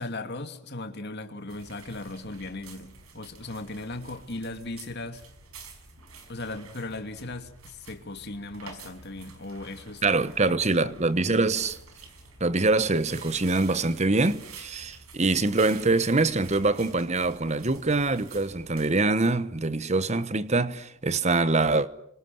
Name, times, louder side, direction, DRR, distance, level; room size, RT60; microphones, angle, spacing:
voice 1, 0.0-5.2 6.3-10.0 10.4-11.0 11.3-11.6, left 2 dB, 50° left, 2.6 m, -37 dB
sound 1, 1.5-18.9, right 4 dB, 85° right, 5.3 m, -48 dB
voice 2, 10.0-11.8 12.4-21.9, right 3 dB, 30° right, 1.1 m, -24 dB
30.0 x 24.5 x 7.8 m
head